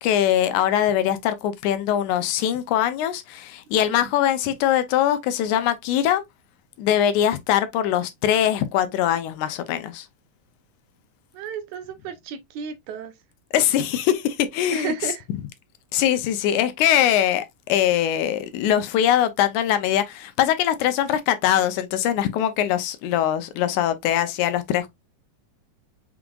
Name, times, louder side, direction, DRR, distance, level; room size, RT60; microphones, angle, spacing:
voice 1, 0.0-6.2 6.8-10.1 13.5-14.9 15.9-24.9, left 11 dB, 80° left, 1.9 m, -22 dB
voice 2, 3.7-4.1 11.3-13.1 14.7-15.2, right 6 dB, 80° right, 1.9 m, -33 dB
5.8 x 3.6 x 2.2 m
omnidirectional pair, 3.7 m